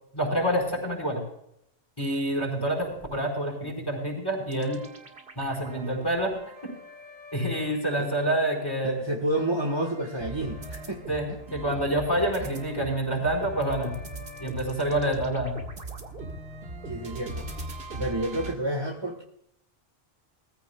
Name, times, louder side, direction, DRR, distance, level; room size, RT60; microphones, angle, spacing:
voice 1, 0.1-1.2 2.0-4.8 5.4-6.4 6.6-6.7 7.3-9.0 11.1-13.9 14.4-15.6, right 1 dB, 20° left, 0 dB, 4.8 m, -27 dB
sound 1, 4.5-8.6 9.0-18.5, right 1 dB, 70° right, 1.9 m, -40 dB
voice 2, 8.8-11.4 16.8-17.5 18.0-19.2, right 1 dB, 25° right, 1 dB, 1.4 m, -30 dB
21.0 x 15.0 x 2.3 m, 0.76 s
omnidirectional pair, 1.1 m